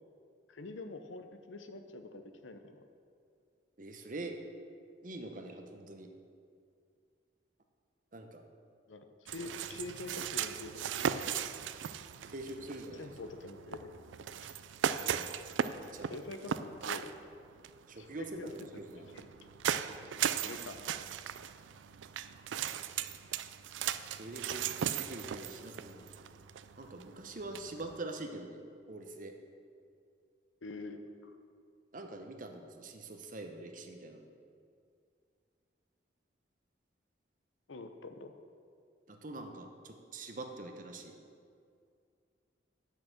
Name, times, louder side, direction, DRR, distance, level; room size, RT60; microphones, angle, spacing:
voice 1, 0.5-2.8 8.9-11.4 12.9-14.5 16.1-17.1 18.0-18.7 19.0-19.3 20.4-20.9 30.6-31.4 37.7-38.3, left 2 dB, 90° left, 7 dB, 0.7 m, -46 dB
voice 2, 3.8-4.4 5.0-6.1 8.1-8.4 12.3-13.1 14.9-15.4 15.7-16.2 17.9-19.1 24.1-26.1 26.8-28.6 28.9-29.3 31.9-34.3 39.1-41.2, right 2 dB, 45° right, 5 dB, 0.8 m, -44 dB
sound 1, 9.3-28.0, right 8 dB, 80° right, 0.4 m, -38 dB
8.6 x 6.6 x 6.5 m, 2.3 s
head